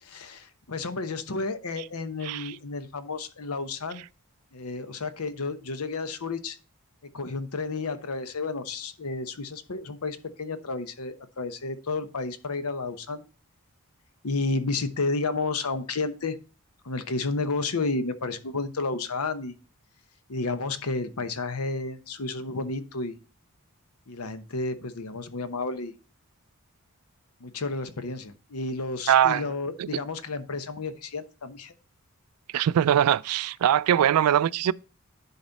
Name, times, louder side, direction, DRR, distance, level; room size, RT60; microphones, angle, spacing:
voice 1, 0.0-4.0 4.5-6.6 7.1-13.2 14.2-16.4 16.8-19.5 20.3-23.2 24.1-25.9 27.4-31.7, left 3 dB, 80° left, 0.9 m, -31 dB
voice 2, 29.1-29.4 29.8-29.9 32.5-34.7, right 10 dB, 85° right, 0.3 m, -22 dB
10.5 x 4.2 x 4.0 m
head